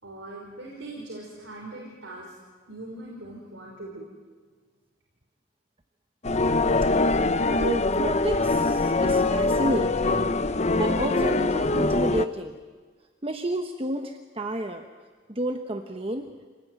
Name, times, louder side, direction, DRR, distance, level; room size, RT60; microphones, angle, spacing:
voice 1, 0.0-2.3 2.7-4.1, right 2 dB, 80° right, -3 dB, 5.2 m, -41 dB
sound 1, 6.2-12.3, left 2 dB, 35° left, 0.8 m, -23 dB
voice 2, 7.5-10.2 10.5-12.6 13.2-14.9 15.3-16.5, right 1 dB, 30° right, 5 dB, 1.1 m, -31 dB
27.5 x 19.5 x 9.4 m, 1.5 s
head